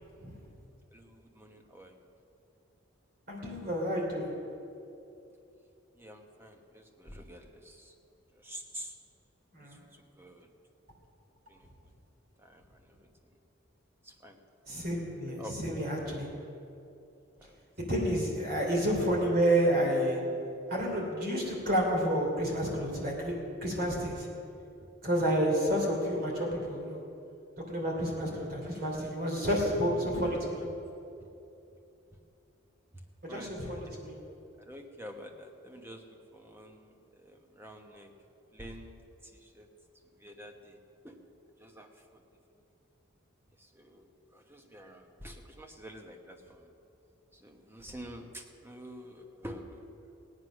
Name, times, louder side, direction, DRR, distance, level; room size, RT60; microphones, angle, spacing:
voice 1, 0.9-2.0 6.0-7.9 8.3-8.9 9.6-10.5 11.5-11.7 12.4-13.1 14.0-14.4 15.4-15.5 17.4-17.6 24.8-24.9 30.6-30.7 33.3-34.1 34.6-38.1 38.5-39.7 40.2-40.8 41.0-41.2 41.6-42.2 43.6-46.7 47.3-49.8, equal, 10° right, 3 dB, 1.1 m, -48 dB
voice 2, 3.3-4.3 9.5-9.8 14.7-16.3 17.8-20.2 20.7-23.3 23.6-24.3 25.0-27.0 27.6-30.6 33.2-34.2, equal, 45° right, -2 dB, 3.1 m, -30 dB
17.5 x 9.7 x 6.3 m, 2.7 s
head